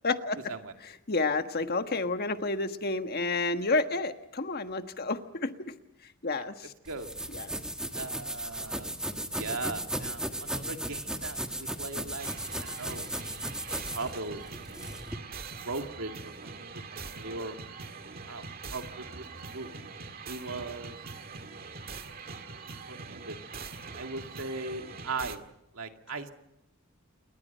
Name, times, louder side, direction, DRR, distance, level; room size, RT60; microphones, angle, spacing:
voice 1, 0.0-0.5 0.8-5.7 6.0-6.7 7.3-7.6, left 3 dB, 50° left, 8 dB, 1.4 m, -30 dB
sound 1, 6.9-15.2, right 1 dB, 5° right, 1.5 m, -36 dB
voice 2, 7.9-9.0 9.3-12.3 12.6-14.9 15.6-17.6 18.2-19.2 19.5-19.7 20.3-21.0 22.3-22.4 22.8-23.4 23.9-25.4 25.7-26.3, right 3 dB, 80° right, 5 dB, 2.2 m, -39 dB
sound 2, 12.2-25.4, right 4 dB, 45° right, 1.9 m, -43 dB
28.5 x 22.5 x 5.6 m, 0.85 s
head